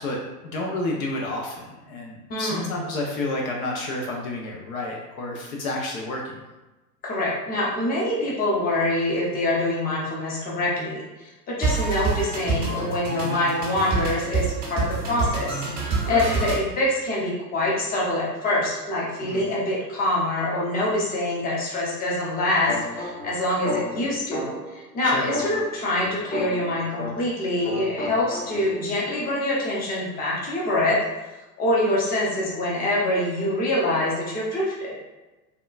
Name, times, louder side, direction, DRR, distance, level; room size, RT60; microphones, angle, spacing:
voice 1, 0.0-6.4 16.0-16.3 19.2-19.5 25.0-25.3, left 2 dB, 55° left, -1 dB, 0.7 m, -30 dB
voice 2, 2.3-2.8 7.0-31.0 31.6-35.0, left 1 dB, 20° left, -5 dB, 0.7 m, -25 dB
sound 1, 11.6-16.6, right 4 dB, 20° right, 0.6 m, -26 dB
sound 2, 22.7-24.8 25.3-27.4 27.6-28.8, left 2 dB, 35° left, 1.5 m, -33 dB
3.5 x 2.2 x 2.3 m, 1.1 s
hypercardioid pair, 100°, 50 cm